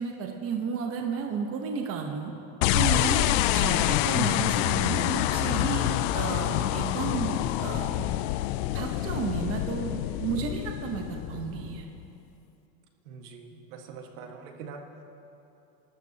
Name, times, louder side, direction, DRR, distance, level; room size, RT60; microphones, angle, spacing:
voice 1, 0.0-2.3 2.7-8.1 8.7-11.9, right 6 dB, 35° right, 3 dB, 1.1 m, -33 dB
sound 1, 2.6-12.0, left 14 dB, 70° left, 0.5 m, -27 dB
voice 2, 13.1-14.8, right 5 dB, 75° right, 2 dB, 1.8 m, -43 dB
25.5 x 13.0 x 2.9 m, 2.9 s
supercardioid pair, 145°, 38 cm